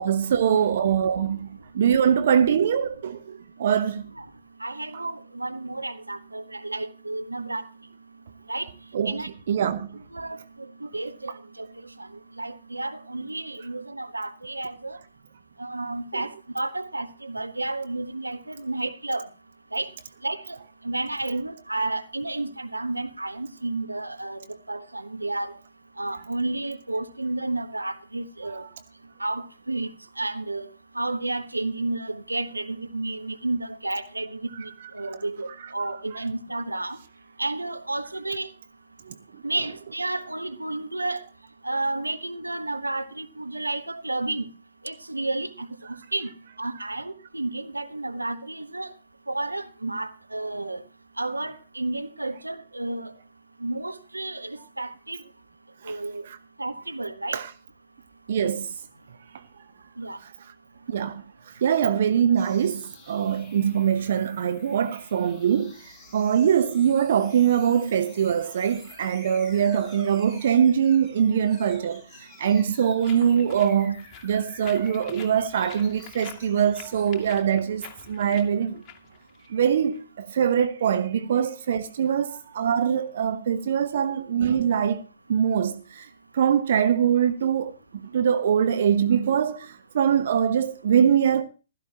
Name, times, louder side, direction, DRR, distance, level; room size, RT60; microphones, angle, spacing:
voice 1, 0.0-1.5 1.7-4.1 8.9-9.2 9.5-10.0 16.1-16.2 28.5-28.6 39.1-39.2 55.9-56.0 56.3-56.4 57.3-57.5 58.3-58.7 60.9-61.2 61.6-78.8 79.5-85.0 85.3-86.1 86.3-87.7 88.0-91.4, right 8 dB, 55° right, 0.9 m, -23 dB
voice 2, 4.6-7.7 8.5-8.7 9.1-9.3 10.1-11.3 11.6-11.7 12.4-15.0 15.6-19.3 19.7-19.9 20.2-20.6 20.8-24.4 24.7-25.5 26.0-28.6 29.2-29.9 30.2-30.7 30.9-37.0 37.4-38.5 39.4-41.2 41.6-44.4 44.8-45.7 46.1-46.3 46.6-48.9 49.3-50.8 51.2-53.1 53.6-55.2 55.8-56.2 56.6-57.4 60.0-60.2, right 2 dB, 85° right, 1.3 m, -31 dB
sound 1, 62.4-77.1, left 4 dB, 10° left, 4.6 m, -51 dB
sound 2, 73.0-80.0, left 9 dB, 25° left, 2.4 m, -47 dB
15.5 x 13.5 x 2.9 m
figure-of-eight pair, 115°, 0 cm